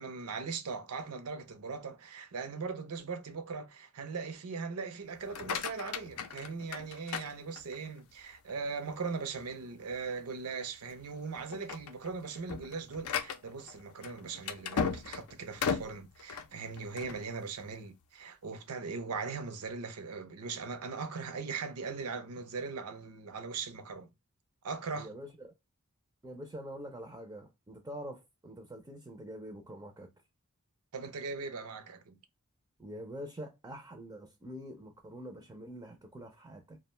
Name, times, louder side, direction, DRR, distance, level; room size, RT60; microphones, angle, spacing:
voice 1, 0.0-24.1 24.6-25.1 30.9-32.2, right 4 dB, 80° right, 0.5 m, -39 dB
sound 1, 5.2-8.0 8.5-8.9 9.4-9.5 9.9-10.1 10.7-11.0 11.4-17.2, left 6 dB, 80° left, 0.4 m, -37 dB
voice 2, 24.9-25.5 26.2-30.1 32.8-36.8, equal, 15° right, 0.4 m, -45 dB
2.4 x 2.1 x 2.9 m
head